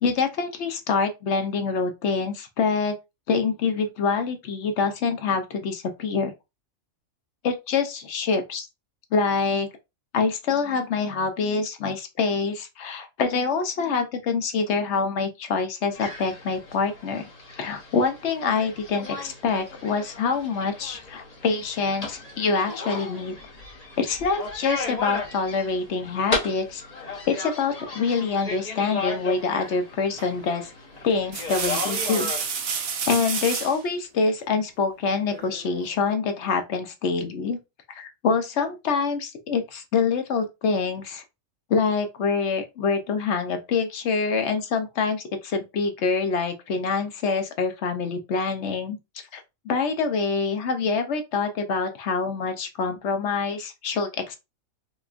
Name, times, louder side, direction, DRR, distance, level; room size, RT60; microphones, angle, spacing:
voice 1, 0.0-3.0 3.3-6.3 7.4-8.7 9.1-9.7 10.1-17.3 17.6-23.4 24.0-26.8 27.3-30.7 31.0-32.3 32.7-37.6 37.9-41.2 41.7-49.0 49.3-54.4, left 5 dB, 65° left, 0.8 m, -25 dB
sound 1, 15.9-32.5, left 3 dB, 35° left, 0.8 m, -35 dB
sound 2, 30.2-30.5 31.1-33.8 35.3-35.9, right 6 dB, 60° right, 0.7 m, -30 dB
4.2 x 2.3 x 2.4 m
omnidirectional pair, 1.4 m